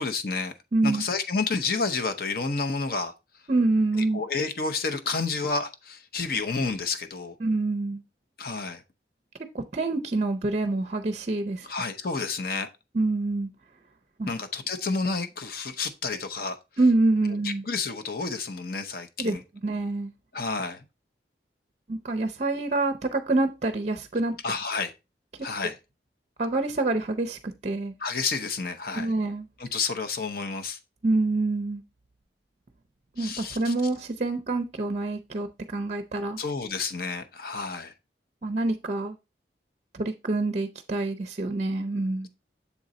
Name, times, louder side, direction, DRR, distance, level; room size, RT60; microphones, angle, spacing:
voice 1, 0.0-0.5 0.8-3.1 4.1-7.3 8.4-8.8 11.6-12.7 14.3-16.6 17.4-19.4 20.3-20.8 24.4-24.9 25.4-25.8 28.0-29.1 29.6-30.8 33.2-33.7 36.4-37.9, left 4 dB, 55° left, 0.7 m, -30 dB
voice 2, 0.7-1.0 3.5-4.2 7.4-8.0 9.5-11.7 12.9-13.5 14.2-14.3 16.8-17.6 19.2-19.4 19.6-20.1 21.9-24.4 26.4-27.9 29.0-29.5 31.0-31.8 33.2-36.4 38.4-39.2 39.9-42.3, right 2 dB, 40° right, 0.5 m, -26 dB
7.2 x 3.8 x 4.0 m
head